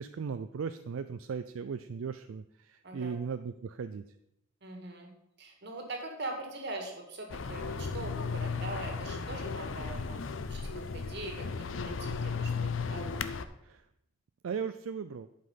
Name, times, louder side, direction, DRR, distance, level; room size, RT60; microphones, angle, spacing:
voice 1, 0.0-4.0 13.6-13.8 14.4-15.3, right 6 dB, 75° right, 11 dB, 0.4 m, -37 dB
voice 2, 2.8-3.1 4.6-5.1 5.4-10.2 10.5-10.6 10.9-11.5 11.7-13.1, right 2 dB, 55° right, 2 dB, 1.9 m, -42 dB
sound 1, 7.3-13.4, left 5 dB, 70° left, 0.6 m, -35 dB
11.5 x 5.4 x 5.6 m, 0.83 s
head